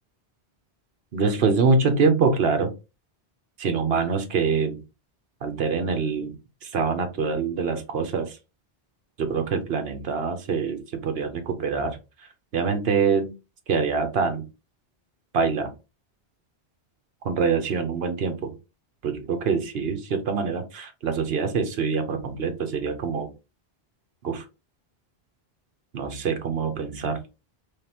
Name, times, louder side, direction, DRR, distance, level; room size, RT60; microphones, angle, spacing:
voice 1, 1.1-2.7 3.6-4.8 5.4-6.4 6.6-8.4 9.2-12.0 12.5-13.3 13.7-14.4 15.3-15.7 17.2-18.5 19.0-23.3 24.2-24.4 25.9-27.2, right 5 dB, 70° right, 6 dB, 1.1 m, -25 dB
3.8 x 3.3 x 2.8 m, 0.27 s
omnidirectional pair, 1.1 m